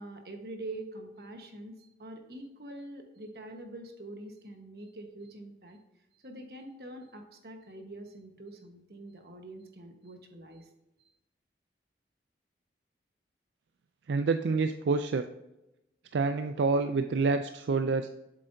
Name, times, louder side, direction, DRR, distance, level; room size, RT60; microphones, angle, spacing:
voice 1, 0.0-1.7 2.0-5.8 6.1-10.7, right 1 dB, 60° right, 4 dB, 1.3 m, -45 dB
voice 2, 14.1-15.2 16.1-18.1, right 4 dB, 85° right, 8 dB, 0.4 m, -27 dB
7.7 x 7.4 x 2.7 m, 0.94 s
head